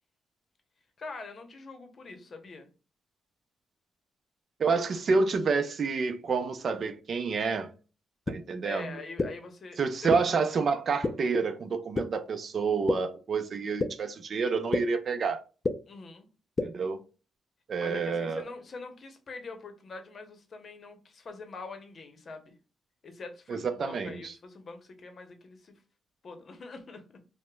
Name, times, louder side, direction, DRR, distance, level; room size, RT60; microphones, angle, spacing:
voice 1, 1.0-2.7 8.6-10.1 15.9-16.3 17.8-22.5 23.0-25.8 26.2-27.0, left 3 dB, 45° left, 0.7 m, -44 dB
voice 2, 4.6-7.7 8.3-8.9 9.8-15.4 16.6-17.0 17.7-18.4 23.5-24.3, right 4 dB, 50° right, 0.4 m, -28 dB
sound 1, 8.3-8.4 9.2-9.3 10.1-10.2 11.0-11.1 11.9-12.0 12.9-13.0 13.8-13.9 14.7-14.8 15.6-15.7 16.6-16.7, left 3 dB, 30° left, 0.3 m, -26 dB
4.8 x 2.1 x 2.2 m
cardioid pair, 105°, 0 cm